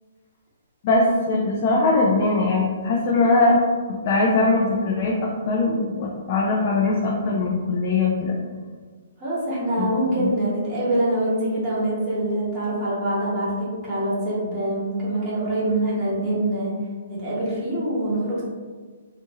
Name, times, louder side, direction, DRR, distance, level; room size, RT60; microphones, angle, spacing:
voice 1, 0.8-3.6 3.9-8.4 9.8-9.9 10.2-10.3, left 3 dB, 45° left, -3 dB, 0.4 m, -21 dB
voice 2, 9.2-16.7 17.1-18.4, right 1 dB, 30° right, -8 dB, 1.1 m, -24 dB
2.5 x 2.4 x 2.9 m, 1.5 s
hypercardioid pair, 135°, 0 cm